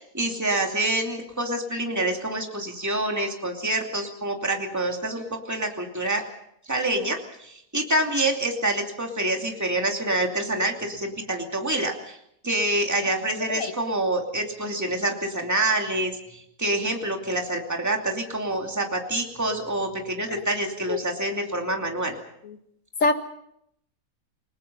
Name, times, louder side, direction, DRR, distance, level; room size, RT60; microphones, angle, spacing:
voice 1, 0.0-6.2 6.7-12.2 12.4-22.2, right 1 dB, 10° right, 2 dB, 2.7 m, -27 dB
voice 2, 13.5-13.7 20.9-21.0 22.4-22.6 23.0-23.1, left 3 dB, 60° left, 7 dB, 2.1 m, -23 dB
29.0 x 20.0 x 5.5 m, 0.76 s
omnidirectional pair, 1.5 m